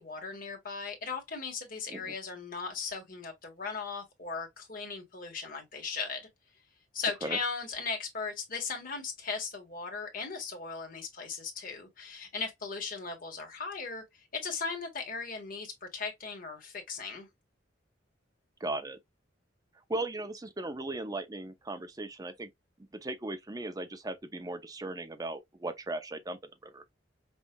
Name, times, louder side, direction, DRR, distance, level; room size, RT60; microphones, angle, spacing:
voice 1, 0.0-6.3 6.9-14.0 14.3-17.3, left 4 dB, 50° left, 1.5 m, -37 dB
voice 2, 18.6-19.0 19.9-22.5 22.9-26.8, right 2 dB, 20° right, 0.6 m, -37 dB
5.5 x 2.4 x 2.3 m
head